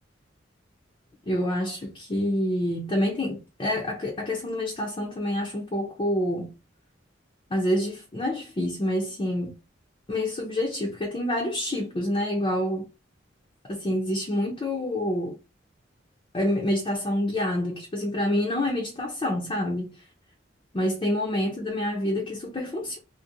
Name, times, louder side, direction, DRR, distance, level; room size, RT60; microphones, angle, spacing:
voice 1, 1.3-6.5 7.5-9.5 10.1-12.9 13.6-15.4 16.3-20.0 20.7-23.0, left 1 dB, 30° left, 0.5 m, -27 dB
2.5 x 2.0 x 2.6 m
head